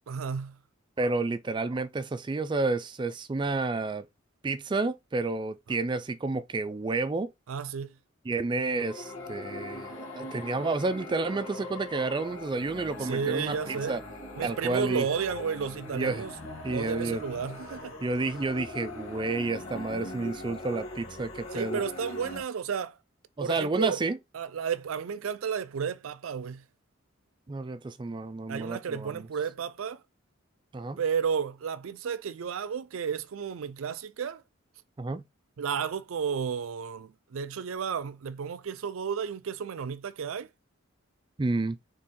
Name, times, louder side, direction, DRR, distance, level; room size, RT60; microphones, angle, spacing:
voice 1, 0.1-0.6 7.5-8.0 13.0-14.0 14.4-16.3 16.7-17.9 21.5-23.0 23.4-24.0 24.3-26.6 28.5-30.0 31.0-34.4 35.6-40.5, right 6 dB, 85° right, 0.4 m, -32 dB
voice 2, 1.0-4.0 4.4-7.3 8.3-14.0 14.4-15.1 15.9-16.2 16.6-17.2 18.0-21.8 23.4-24.2 27.5-29.3 30.7-31.0 35.0-35.2 41.4-41.8, right 3 dB, 25° right, 0.3 m, -30 dB
sound 1, 8.8-22.4, left 2 dB, 85° left, 1.8 m, -41 dB
4.3 x 3.4 x 3.7 m
head